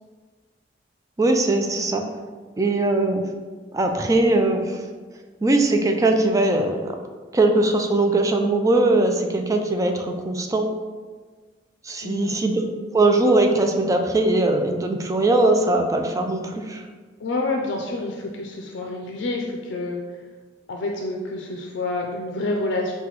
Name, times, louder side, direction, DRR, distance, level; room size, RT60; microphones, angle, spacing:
voice 1, 1.2-2.0 2.6-3.3 3.7-4.8 5.4-7.0 7.3-10.7 11.8-12.7 12.9-16.8, right 2 dB, 20° right, 4 dB, 0.3 m, -20 dB
voice 2, 12.0-12.3 17.2-20.0 20.7-22.9, left 2 dB, 80° left, 1 dB, 0.4 m, -28 dB
5.8 x 2.2 x 3.0 m, 1.4 s
head